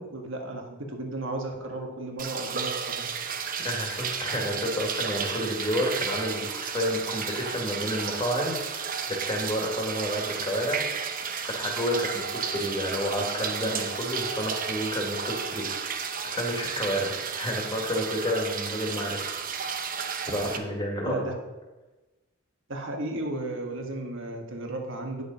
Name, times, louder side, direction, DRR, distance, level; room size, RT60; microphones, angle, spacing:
voice 1, 0.0-3.2 21.0-21.3 22.7-25.2, right 2 dB, 65° right, 2 dB, 1.6 m, -34 dB
sound 1, 2.2-20.6, right 6 dB, 40° right, 0.8 m, -33 dB
voice 2, 3.6-10.8 11.4-16.0 16.2-19.3 19.6-19.8 20.3-21.3, equal, 20° left, 0 dB, 1.9 m, -30 dB
9.8 x 6.4 x 5.4 m, 1.1 s
head